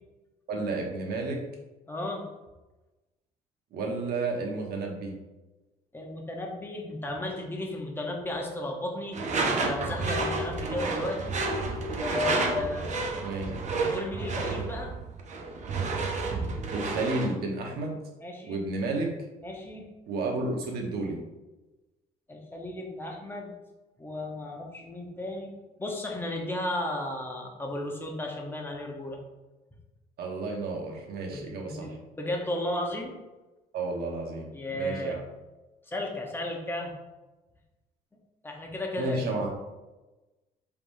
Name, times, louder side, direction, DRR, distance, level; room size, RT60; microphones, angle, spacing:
voice 1, 0.5-1.4 3.7-5.2 13.2-13.5 16.7-18.0 18.5-19.1 20.1-21.2 30.2-31.9 33.7-34.5 34.7-35.2 39.0-39.5, right 3 dB, 65° right, 1 dB, 1.1 m, -31 dB
voice 2, 1.9-2.2 5.9-11.4 12.0-12.9 13.4-14.9 18.2-18.6 19.4-19.9 22.3-23.5 24.0-25.5 25.8-29.2 31.3-33.1 34.5-35.2 35.9-37.0 38.4-39.2, left 1 dB, 15° left, 0 dB, 0.9 m, -34 dB
Door / Screech, 9.1-17.4, right 3 dB, 45° right, 0.7 m, -30 dB
4.7 x 3.6 x 2.7 m, 1.1 s
cardioid pair, 110°, 17 cm